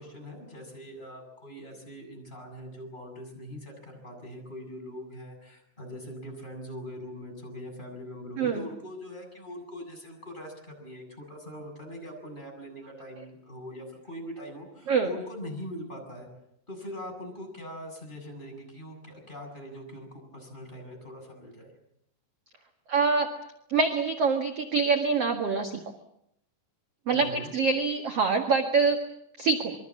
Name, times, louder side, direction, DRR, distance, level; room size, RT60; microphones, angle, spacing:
voice 1, 0.0-16.3 16.7-21.7 27.1-27.5, equal, 10° left, 0 dB, 7.4 m, -42 dB
voice 2, 22.9-23.3 23.7-25.8 27.1-29.0 29.4-29.7, right 4 dB, 50° right, 4 dB, 1.9 m, -25 dB
27.0 x 23.0 x 7.3 m, 0.76 s
omnidirectional pair, 5.3 m